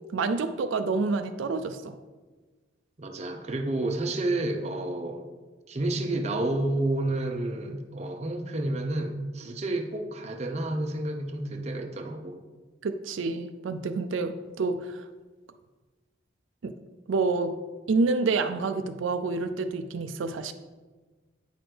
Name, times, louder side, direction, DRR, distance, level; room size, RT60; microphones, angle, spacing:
voice 1, 0.1-2.0 12.8-15.0 16.6-16.7 17.1-17.6 17.9-20.5, right 3 dB, 80° right, 8 dB, 0.4 m, -28 dB
voice 2, 3.0-5.2 5.7-12.4, right 2 dB, 35° right, 4 dB, 0.6 m, -30 dB
8.9 x 6.0 x 3.3 m, 1.3 s
head